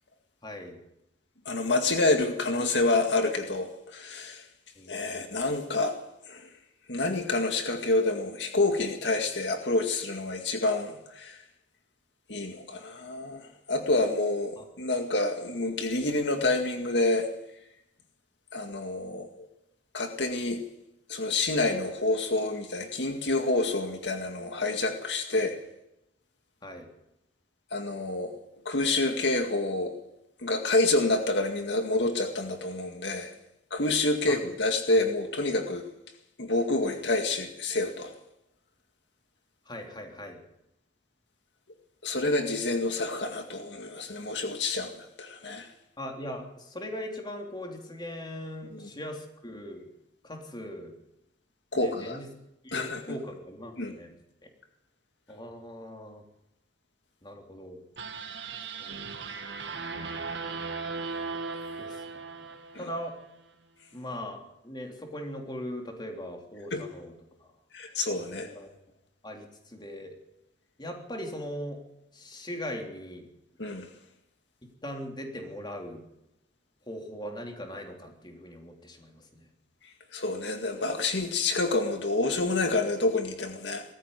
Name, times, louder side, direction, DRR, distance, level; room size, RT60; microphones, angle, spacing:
voice 1, 0.4-0.8 4.8-5.4 14.6-14.7 26.6-26.9 34.3-34.4 39.7-40.4 46.0-49.9 50.2-50.9 51.7-52.3 52.6-54.1 54.4-54.5 55.3-56.2 57.2-57.8 58.8-59.3 59.6-60.3 61.8-63.2 63.9-67.1 67.4-67.5 68.2-68.7 69.2-70.2 70.8-71.8 72.1-73.3 74.8-76.0 76.9-79.5, equal, 25° left, 2 dB, 3.4 m, -40 dB
voice 2, 1.5-4.4 4.9-6.0 6.3-6.5 6.9-11.4 12.3-17.3 18.5-19.5 19.9-20.6 21.1-25.6 27.7-28.3 28.7-29.9 30.4-33.3 33.7-35.9 36.4-38.1 42.0-45.7 48.7-48.9 51.7-52.2 52.7-53.2 53.8-53.9 62.7-62.9 66.7-66.8 67.7-68.5 73.6-73.9 80.1-83.8, left 2 dB, 75° left, 5 dB, 2.0 m, -28 dB
sound 1, 58.0-63.2, right 4 dB, 80° right, 2.0 m, -37 dB
20.0 x 14.0 x 9.8 m, 0.85 s
head